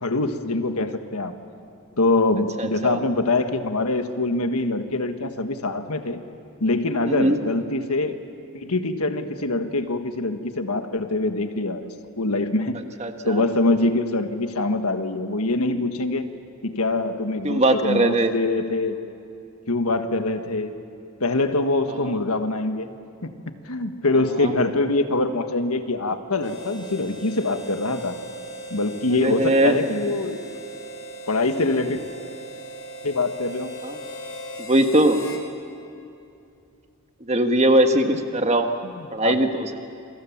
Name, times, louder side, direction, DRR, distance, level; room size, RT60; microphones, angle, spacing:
voice 1, 0.0-1.4 2.0-6.2 6.6-8.2 8.5-11.9 12.2-12.8 13.2-16.3 16.6-19.0 19.7-20.7 21.2-22.9 23.2-23.3 23.7-28.2 28.7-30.4 31.3-32.0 33.0-33.7 38.8-39.4, left 2 dB, 85° left, 7 dB, 1.5 m, -24 dB
voice 2, 2.6-3.0 7.0-7.4 13.0-13.4 17.4-18.3 21.9-22.1 24.4-24.5 29.2-29.8 33.8-34.0 34.7-35.2 37.3-38.7 39.1-39.9, right 1 dB, 30° right, 6 dB, 1.5 m, -20 dB
Harmonica, 26.4-35.5, right 1 dB, 60° left, 3.8 m, -38 dB
28.0 x 24.0 x 7.3 m, 2.5 s
head